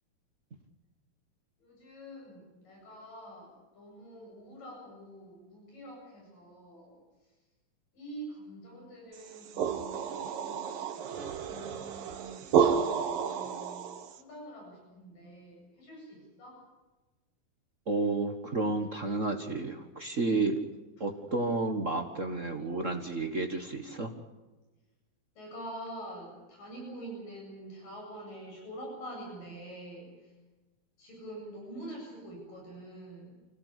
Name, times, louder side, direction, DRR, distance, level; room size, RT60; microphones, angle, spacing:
voice 1, 1.6-7.0 7.9-10.8 11.1-13.8 14.1-16.6 25.4-30.1 31.0-33.3, right 1 dB, 65° left, -1 dB, 9.8 m, -46 dB
sound 1, 9.2-14.2, right 7 dB, 75° right, 3.2 m, -30 dB
voice 2, 17.9-20.5 21.0-24.1, right 3 dB, 50° right, 5 dB, 0.8 m, -31 dB
26.0 x 17.5 x 8.4 m, 1.1 s
omnidirectional pair, 4.1 m